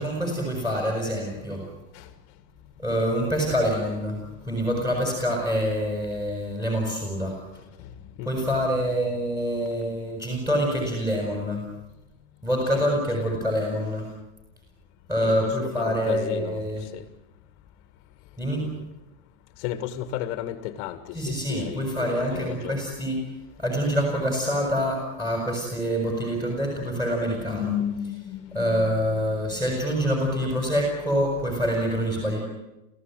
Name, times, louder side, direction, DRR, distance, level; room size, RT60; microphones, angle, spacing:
voice 1, 0.0-1.6 2.8-4.2 4.4-7.4 8.2-11.7 12.4-14.1 15.1-16.8 18.4-18.7 21.1-23.2 23.6-27.7 28.5-32.4, equal, 5° right, -1 dB, 6.7 m, -26 dB
voice 2, 1.6-2.1 4.5-4.8 7.8-7.9 8.2-8.5 12.7-12.9 13.2-13.3 15.2-17.0 18.6-18.9 19.6-22.8 26.0-29.7, left 11 dB, 45° left, 8 dB, 1.9 m, -35 dB
29.0 x 16.0 x 9.2 m, 0.96 s
supercardioid pair, 160°, 41 cm